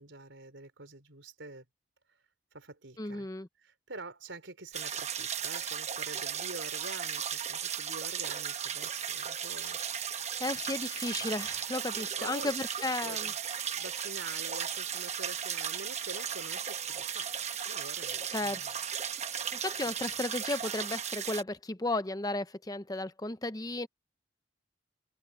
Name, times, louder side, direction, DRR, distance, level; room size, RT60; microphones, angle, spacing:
voice 1, 0.0-1.7 2.5-3.3 3.6-9.8 11.9-12.5 13.0-13.4 13.7-17.3 17.7-18.7, right 2 dB, 70° right, 3.9 m, -46 dB
voice 2, 3.0-3.5 10.4-13.3 18.3-18.6 19.5-23.9, left 2 dB, 20° left, 0.7 m, -34 dB
sound 1, 4.7-21.4, right 8 dB, 35° right, 1.0 m, -36 dB
open air
head